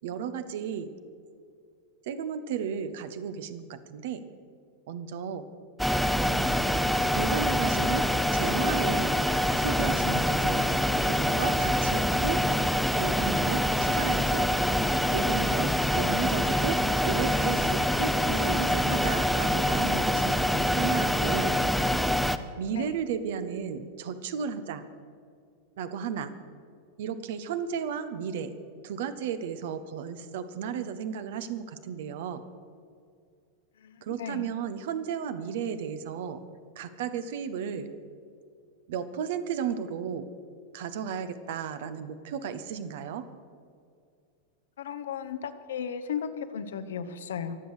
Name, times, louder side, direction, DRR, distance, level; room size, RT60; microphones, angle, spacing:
voice 1, 0.0-0.9 2.1-4.2 4.9-5.4 7.1-8.1 8.3-9.2 9.6-10.7 11.0-12.4 12.9-14.5 15.1-21.5 22.6-24.8 25.8-26.3 27.0-28.5 28.8-32.4 34.0-36.4 36.8-37.9 38.9-40.3 40.7-43.2, right 7 dB, 55° right, 11 dB, 1.0 m, -34 dB
sound 1, 5.8-22.4, equal, ahead, 0.7 m, -25 dB
voice 2, 33.8-34.5 44.8-47.6, left 7 dB, 60° left, 10 dB, 1.0 m, -35 dB
23.5 x 8.0 x 6.7 m, 2.2 s
figure-of-eight pair, 90°, 0 cm